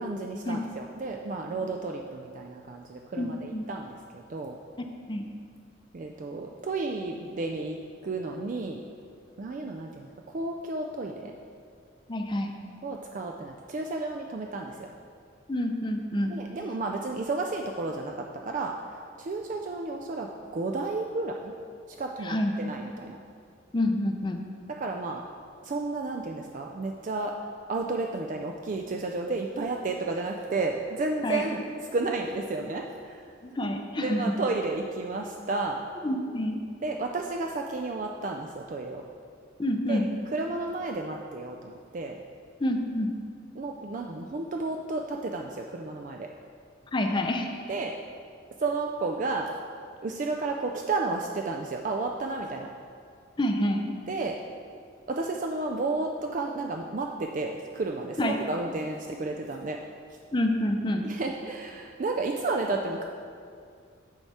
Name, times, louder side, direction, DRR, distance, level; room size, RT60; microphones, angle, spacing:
voice 1, 0.0-4.6 5.9-7.8 8.0-8.8 9.4-10.1 10.3-11.3 12.8-14.9 16.3-18.7 19.2-21.5 22.0-23.2 24.8-25.2 25.6-27.3 27.7-31.6 31.9-33.2 34.0-35.8 36.8-39.0 39.9-40.0 40.3-42.2 43.6-46.3 47.7-48.0 48.6-49.5 50.0-52.7 54.1-54.4 55.1-59.8 61.0-63.0, right 3 dB, 45° right, 2 dB, 0.4 m, -32 dB
voice 2, 3.2-3.6 4.8-5.2 12.1-12.6 15.5-16.4 22.2-22.7 23.7-24.4 31.2-31.4 33.4-34.3 36.0-36.6 39.6-40.1 42.6-43.1 46.9-47.5 53.4-53.9 58.2-58.3 60.3-61.1, left 1 dB, 25° left, 4 dB, 0.5 m, -28 dB
9.9 x 4.7 x 4.2 m, 2.2 s
head